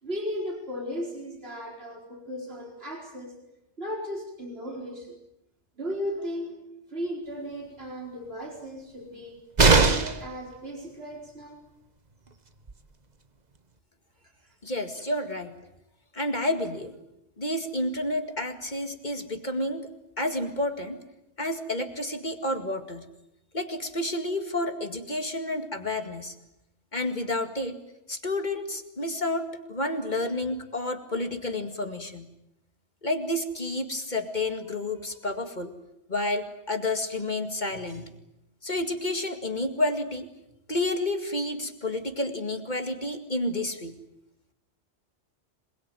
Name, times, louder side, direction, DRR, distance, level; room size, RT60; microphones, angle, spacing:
voice 1, 0.0-3.3 3.8-5.2 5.8-9.4 9.7-11.6 14.4-14.6, equal, 60° right, 1 dB, 4.6 m, -36 dB
sound 1, 9.6-10.3 12.3-12.4 12.7-12.8, right 3 dB, 40° right, 1.4 m, -19 dB
voice 2, 14.6-15.6 16.1-17.0 17.4-19.9 20.2-21.0 21.4-23.1 23.5-26.3 26.9-27.8 28.1-32.3 33.0-35.7 36.1-38.1 38.6-40.3 40.7-44.0, left 1 dB, 40° left, 6 dB, 2.3 m, -30 dB
27.0 x 21.0 x 9.2 m, 0.84 s
omnidirectional pair, 1.2 m